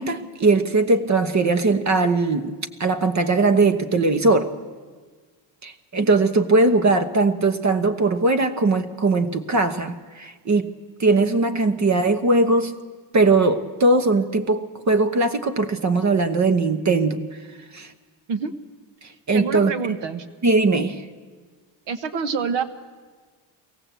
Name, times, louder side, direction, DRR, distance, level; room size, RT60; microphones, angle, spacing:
voice 1, 0.0-2.5 2.8-4.5 5.6-10.7 11.0-12.7 13.1-17.2 17.7-17.9 19.3-19.7 20.4-21.0, right 3 dB, 35° right, 10 dB, 1.1 m, -20 dB
voice 2, 19.3-20.3 21.9-22.6, right 5 dB, 60° right, 12 dB, 1.2 m, -26 dB
23.0 x 17.5 x 8.1 m, 1.5 s
cardioid pair, 130°, 50 cm